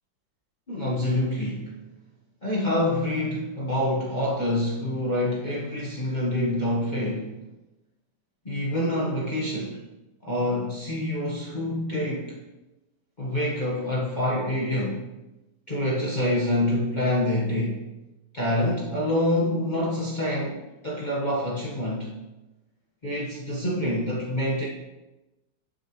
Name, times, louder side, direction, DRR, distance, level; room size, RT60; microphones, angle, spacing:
voice 1, 0.7-1.7 2.4-7.3 8.4-9.8 10.2-12.4 13.2-15.0 15.7-17.8 18.3-22.1 23.0-24.7, left 1 dB, 25° left, -7 dB, 1.4 m, -26 dB
11.0 x 6.8 x 3.2 m, 1.0 s
omnidirectional pair, 1.9 m